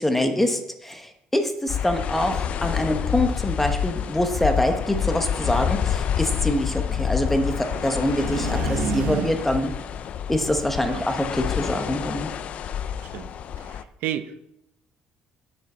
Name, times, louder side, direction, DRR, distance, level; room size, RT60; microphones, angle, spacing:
voice 1, 0.0-9.7 10.3-12.3, left 1 dB, 5° left, 6 dB, 1.0 m, -25 dB
sound 1, 1.7-13.8, left 9 dB, 45° left, 0.5 m, -28 dB
sound 2, 4.3-9.7, right 9 dB, 60° right, 0.9 m, -34 dB
voice 2, 13.6-14.4, right 11 dB, 85° right, 10 dB, 0.8 m, -33 dB
10.0 x 8.0 x 5.5 m, 0.84 s
cardioid pair, 160°, 3 cm